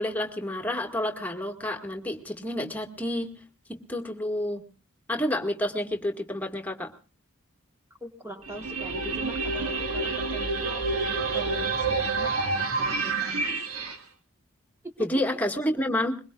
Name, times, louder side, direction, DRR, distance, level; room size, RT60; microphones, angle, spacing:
voice 1, 0.0-3.3 3.7-4.6 5.1-6.9 15.0-16.2, left 1 dB, 10° left, 3 dB, 2.0 m, -29 dB
voice 2, 8.0-10.8 11.3-13.4 14.8-14.9, right 1 dB, 10° right, 3 dB, 1.5 m, -42 dB
sound 1, 8.4-14.0, right 3 dB, 80° right, 1.9 m, -28 dB
22.5 x 22.0 x 2.5 m, 0.35 s
head